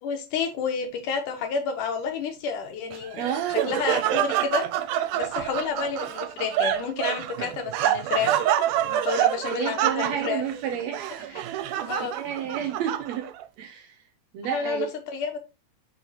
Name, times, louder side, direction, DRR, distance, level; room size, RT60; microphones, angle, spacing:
voice 1, 0.0-3.4 3.7-4.8 5.1-8.3 8.8-10.4 11.9-12.2 14.5-15.4, left 6 dB, 80° left, 2.7 m, -30 dB
Laughter, 2.9-13.4, right 12 dB, 90° right, 2.1 m, -27 dB
voice 2, 3.2-3.8 9.4-11.5 12.1-13.3 13.6-14.0 14.3-14.9, right 9 dB, 70° right, 1.7 m, -31 dB
5.6 x 4.4 x 4.1 m
omnidirectional pair, 3.6 m